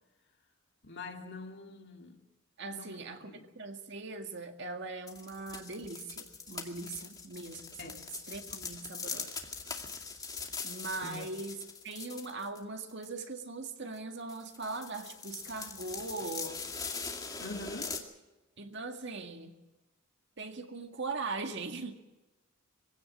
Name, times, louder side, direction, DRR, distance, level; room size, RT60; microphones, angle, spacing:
voice 1, 0.8-2.2 2.7-3.5 7.8-7.9 11.0-11.3 17.4-18.0, left 2 dB, 55° left, 2.6 m, -44 dB
voice 2, 2.6-9.3 10.6-16.6 18.6-19.5 20.4-22.0, right 3 dB, 60° right, 2.0 m, -40 dB
sound 1, 5.1-12.6 12.9-13.1 14.0-14.1 14.3-18.0, left 5 dB, 20° left, 2.2 m, -42 dB
23.0 x 16.5 x 7.4 m
head